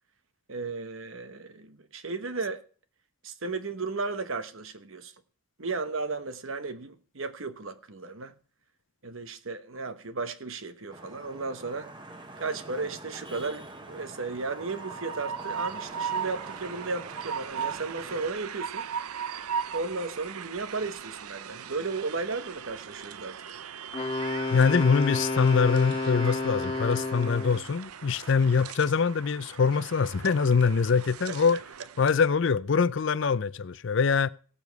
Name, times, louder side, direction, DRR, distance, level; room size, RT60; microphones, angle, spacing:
voice 1, 0.5-2.6 3.2-5.1 5.6-8.3 9.0-11.9 12.4-18.9 19.7-23.4 31.3-31.4, right 3 dB, 65° right, 1.1 m, -34 dB
Vehicle horn car horn honking / Traffic noise roadway noise, 10.9-18.3, right 2 dB, 20° right, 1.2 m, -45 dB
Train, 14.5-32.3, right 7 dB, 90° right, 0.6 m, -39 dB
Wind instrument woodwind instrument, 23.9-27.7, left 3 dB, 25° left, 1.9 m, -31 dB
voice 2, 24.5-31.6 32.0-34.3, left 5 dB, 55° left, 0.5 m, -24 dB
17.0 x 7.1 x 4.6 m
head